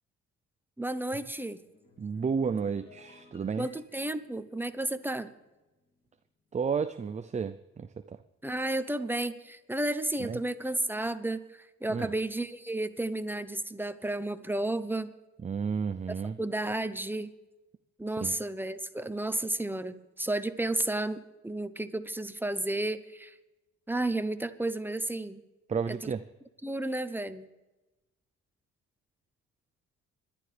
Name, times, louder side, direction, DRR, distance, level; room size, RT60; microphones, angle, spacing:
voice 1, 0.8-1.6 3.6-5.3 8.4-15.1 16.4-17.3 18.0-23.3 23.9-25.4 25.9-26.1 26.6-27.5, right 1 dB, 5° right, 11 dB, 0.9 m, -32 dB
sound 1, 1.6-6.2 6.5-6.8, left 2 dB, 30° left, 2.2 m, -58 dB
voice 2, 2.0-3.7 6.5-8.2 10.2-10.4 11.9-12.1 15.4-16.4 18.2-18.4 25.7-26.2, right 6 dB, 25° right, 10 dB, 0.5 m, -32 dB
27.0 x 11.5 x 3.4 m, 1.1 s
cardioid pair, 90°, 30 cm